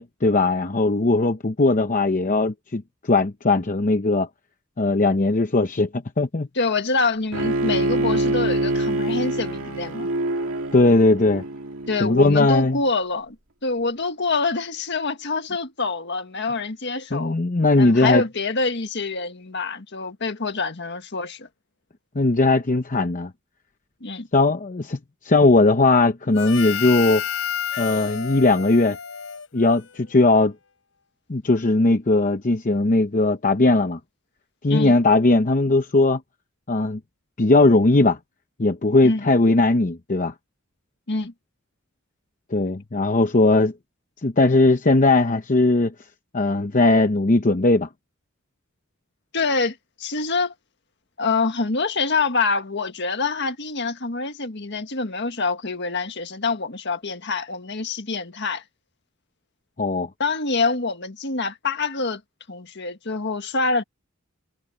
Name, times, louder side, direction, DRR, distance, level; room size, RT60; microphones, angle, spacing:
voice 1, 0.0-4.3 4.8-6.5 10.7-11.4 12.0-12.8 17.1-18.2 22.1-23.3 24.3-25.0 25.2-27.2 27.8-29.0 29.5-30.5 31.3-34.0 34.6-36.2 36.7-37.0 37.4-38.2 38.6-40.3 42.5-43.7 44.2-45.9 46.3-47.9 59.8-60.1, left 2 dB, 40° left, 0.8 m, -19 dB
voice 2, 6.6-10.1 11.9-13.4 13.6-17.4 17.8-21.5 24.0-24.3 34.7-35.0 39.0-39.3 41.1-41.3 49.3-50.5 51.2-58.6 60.2-62.2 62.5-63.8, left 3 dB, 55° left, 1.7 m, -26 dB
Bowed string instrument, 7.3-12.4, right 2 dB, 75° right, 2.4 m, -25 dB
Harmonica, 26.3-30.1, left 8 dB, 80° left, 3.3 m, -30 dB
head